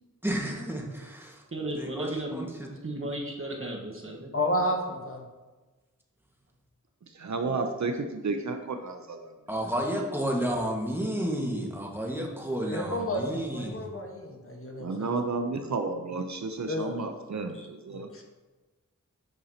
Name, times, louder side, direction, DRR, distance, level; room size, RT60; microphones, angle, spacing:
voice 1, 0.2-1.4 1.7-2.7 9.5-13.8, right 1 dB, 5° right, -1 dB, 1.6 m, -31 dB
voice 2, 1.5-2.4 2.8-4.3, right 1 dB, 45° right, -1 dB, 1.4 m, -34 dB
voice 3, 4.3-5.2 10.3-10.4 12.7-15.2 16.7-17.0 17.5-18.2, left 1 dB, 45° left, 1 dB, 1.4 m, -32 dB
voice 4, 7.2-9.3 14.8-18.1, right 3 dB, 60° right, 6 dB, 0.7 m, -32 dB
9.3 x 5.6 x 2.8 m, 1.2 s
cardioid pair, 45°, 31 cm